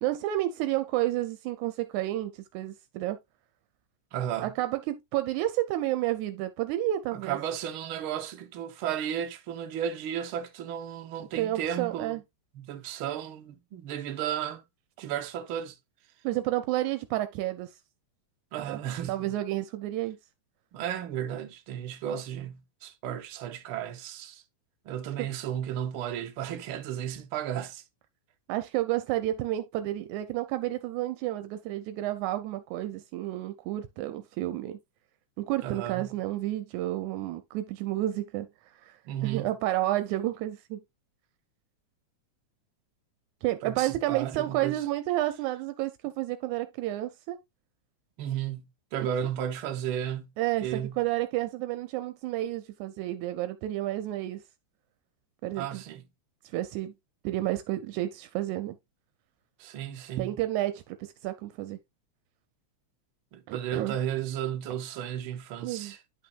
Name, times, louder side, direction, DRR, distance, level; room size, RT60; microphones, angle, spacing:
voice 1, 0.0-3.2 4.4-7.4 11.4-12.2 16.2-17.7 18.7-18.8 19.1-20.2 25.2-25.3 28.5-34.8 35.4-38.5 38.8-40.8 43.4-47.4 50.4-54.4 55.4-55.8 56.5-56.9 57.2-58.8 60.2-61.8 63.5-64.0 65.6-65.9, right 15 dB, 85° right, 2.0 m, -30 dB
voice 2, 4.1-4.5 7.1-12.2 12.5-14.6 15.0-15.8 18.5-19.3 20.7-24.4 24.8-27.8 35.6-36.1 39.0-39.5 43.6-44.8 48.2-50.3 50.6-51.0 55.6-56.0 59.6-60.4 63.3-66.0, right 10 dB, 70° right, 1.3 m, -34 dB
10.5 x 5.6 x 2.3 m
omnidirectional pair, 3.4 m